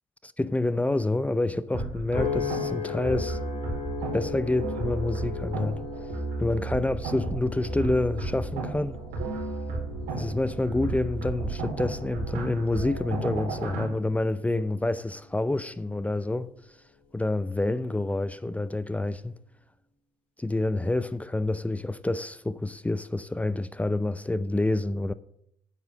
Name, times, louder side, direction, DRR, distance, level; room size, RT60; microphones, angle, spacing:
voice 1, 0.2-3.4 4.1-5.8 6.4-9.0 10.1-16.5 17.1-19.3 20.4-25.1, left 2 dB, 10° left, 0.6 m, -28 dB
sound 1, 1.7-13.9, right 3 dB, 80° right, 4.5 m, -33 dB
sound 2, 2.1-16.6 17.2-17.6, left 6 dB, 60° left, 4.3 m, -39 dB
9.4 x 8.3 x 6.5 m
supercardioid pair, 60°, 12 cm